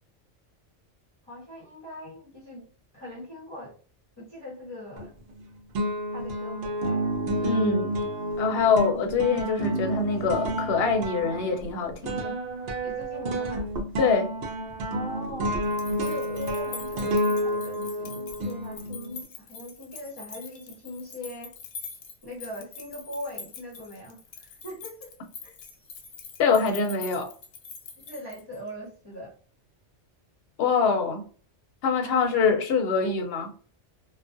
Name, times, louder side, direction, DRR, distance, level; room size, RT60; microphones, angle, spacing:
voice 1, 1.3-2.7 2.9-3.8 4.2-5.1 6.1-7.0 12.8-13.7 14.9-15.6 16.0-21.6 22.2-25.1 25.4-25.5 28.0-29.4 31.9-32.3, left 1 dB, 25° left, 0.7 m, -40 dB
sound 1, 5.0-5.4 5.8-19.2, equal, 65° right, 0.7 m, -30 dB
voice 2, 7.4-8.0 8.4-12.3 14.0-14.3 26.4-27.3 30.6-31.2 31.8-33.5, left 4 dB, 60° left, 0.8 m, -24 dB
sound 2, 15.6-28.7, left 6 dB, 90° left, 0.9 m, -44 dB
2.4 x 2.2 x 2.5 m
omnidirectional pair, 1.2 m